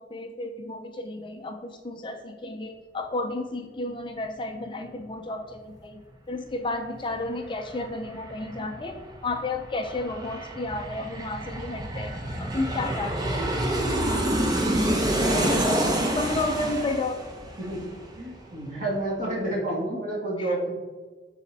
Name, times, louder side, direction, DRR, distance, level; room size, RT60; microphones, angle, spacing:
voice 1, 0.0-6.0 6.3-13.4 15.3-17.2 20.4-20.5, left 2 dB, 25° left, 5 dB, 0.5 m, -32 dB
Aircraft, 6.9-7.0 7.3-18.6 18.9-19.0, right 1 dB, 20° right, 0.8 m, -28 dB
voice 2, 15.0-16.0 17.6-17.9 18.1-20.8, right 1 dB, 45° right, -7 dB, 2.3 m, -31 dB
11.5 x 4.1 x 2.8 m, 1.3 s
head